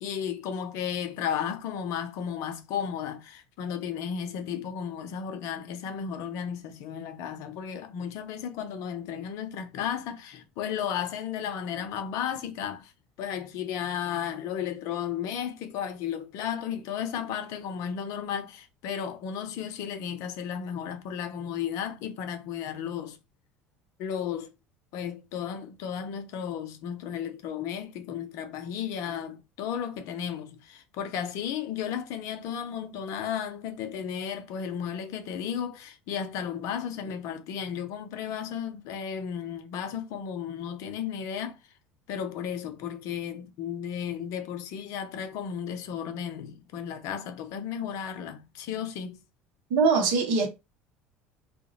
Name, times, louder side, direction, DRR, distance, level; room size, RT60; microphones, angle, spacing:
voice 1, 0.0-12.9 13.2-23.2 24.0-24.5 24.9-41.6 42.1-49.2, left 8 dB, 55° left, 0.6 m, -34 dB
voice 2, 49.7-50.5, right 4 dB, 60° right, 0.7 m, -22 dB
2.4 x 2.1 x 2.9 m
figure-of-eight pair, 65°, 7 cm